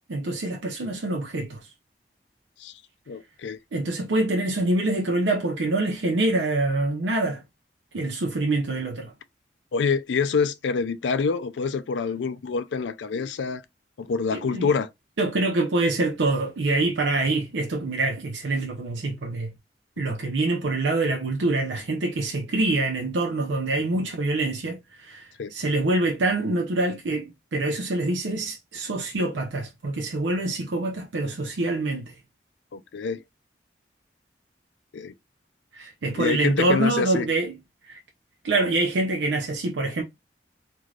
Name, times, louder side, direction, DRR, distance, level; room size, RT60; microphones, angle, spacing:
voice 1, 0.1-1.7 3.7-7.4 7.9-9.1 14.3-14.7 15.2-19.5 20.0-32.1 35.7-37.6 37.8-38.0 38.4-40.0, right 2 dB, 85° right, 0.5 m, -25 dB
voice 2, 3.1-3.6 9.7-13.6 14.0-14.9 23.9-24.0 25.4-25.5 32.7-33.2 34.9-35.1 36.2-37.3, left 5 dB, 80° left, 0.4 m, -26 dB
3.2 x 2.5 x 2.3 m
head